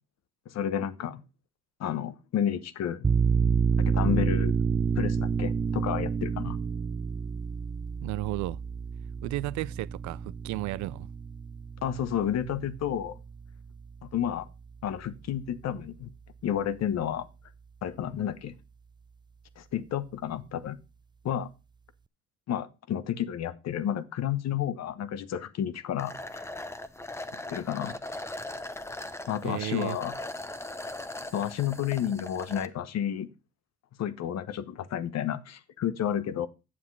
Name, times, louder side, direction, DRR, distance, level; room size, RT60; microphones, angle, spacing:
voice 1, 0.5-1.2 1.8-3.0 3.8-4.5 5.0-6.6 11.8-13.2 14.0-14.5 14.8-16.1 16.4-17.3 17.8-18.5 19.6-20.8 21.2-21.5 22.5-26.4 27.5-27.9 29.3-30.1 31.3-33.3 34.0-36.5, left 10 dB, 60° left, 1.1 m, -31 dB
sound 1, 3.0-14.3, right 6 dB, 15° right, 0.4 m, -29 dB
voice 2, 8.0-8.6 9.2-11.1 29.4-30.0, right 18 dB, 75° right, 0.5 m, -33 dB
sound 2, 26.0-32.7, left 1 dB, 10° left, 0.8 m, -39 dB
8.8 x 7.4 x 4.7 m
supercardioid pair, 70°, 29 cm